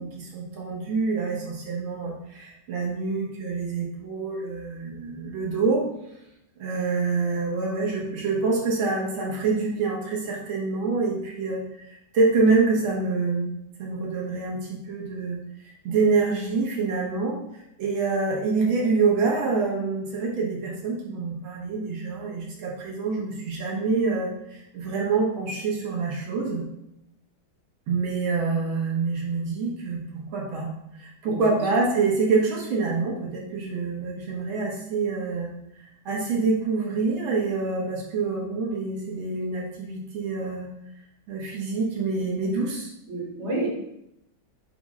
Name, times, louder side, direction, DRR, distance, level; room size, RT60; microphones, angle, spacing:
voice 1, 0.0-5.8 6.6-13.5 13.8-15.4 15.8-26.6 27.9-30.0 30.3-30.7 31.0-35.5 36.1-40.7 41.3-42.9, right 4 dB, 90° right, -2 dB, 2.0 m, -26 dB
voice 2, 31.2-31.6 43.1-43.7, right 2 dB, 35° right, -5 dB, 2.2 m, -30 dB
9.0 x 3.2 x 3.7 m, 0.82 s
omnidirectional pair, 2.1 m